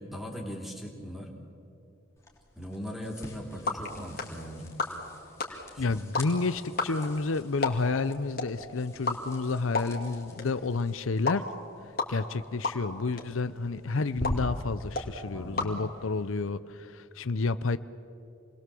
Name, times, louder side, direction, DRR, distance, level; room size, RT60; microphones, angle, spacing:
voice 1, 0.0-1.3 2.5-4.7 5.7-6.0 15.3-15.8, equal, ahead, 1 dB, 3.3 m, -40 dB
sound 1, 2.2-15.7, equal, 15° left, 3.2 m, -44 dB
sound 2, 3.2-16.5, left 3 dB, 45° left, 2.7 m, -37 dB
voice 2, 5.8-11.5 12.1-17.8, left 3 dB, 80° left, 14 dB, 0.7 m, -30 dB
28.0 x 20.5 x 7.7 m, 2.6 s
head